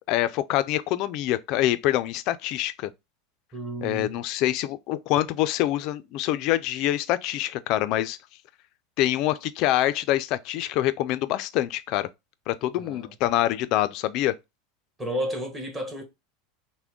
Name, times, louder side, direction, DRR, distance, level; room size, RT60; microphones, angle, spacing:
voice 1, 0.1-2.9 3.8-8.2 9.0-12.1 12.5-14.3, left 14 dB, 50° left, 0.4 m, -25 dB
voice 2, 3.5-4.1 12.8-13.1 15.0-16.0, equal, 15° right, 1.3 m, -32 dB
5.9 x 2.1 x 3.6 m
supercardioid pair, 145°, 0 cm